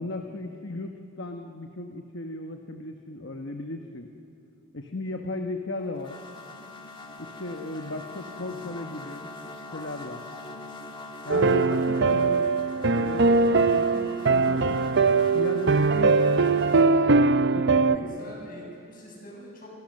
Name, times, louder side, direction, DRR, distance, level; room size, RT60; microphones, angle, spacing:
voice 1, 0.0-4.1 4.7-6.2 7.2-9.3 9.7-10.2 11.2-12.5 12.9-14.8 15.3-16.6 17.5-18.1, left 2 dB, 55° left, 4 dB, 1.1 m, -36 dB
sound 1, 5.8-16.9, left 2 dB, 20° left, 1.6 m, -43 dB
sound 2, 11.3-18.0, right 4 dB, 50° right, 0.7 m, -21 dB
voice 2, 17.7-19.7, equal, 40° left, -2 dB, 7.8 m, -44 dB
28.0 x 24.5 x 6.6 m, 2.6 s
head